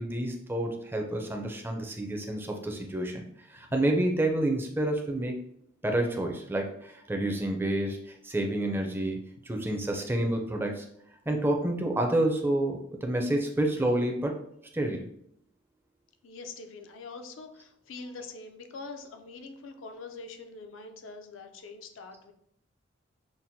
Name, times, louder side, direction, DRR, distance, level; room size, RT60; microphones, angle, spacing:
voice 1, 0.0-3.2 3.5-5.4 5.8-9.2 9.4-10.9 11.3-14.3 14.7-15.1, right 1 dB, 10° right, 2 dB, 0.4 m, -29 dB
voice 2, 16.2-22.3, left 3 dB, 75° left, 6 dB, 0.5 m, -44 dB
5.8 x 2.1 x 2.7 m, 0.71 s
head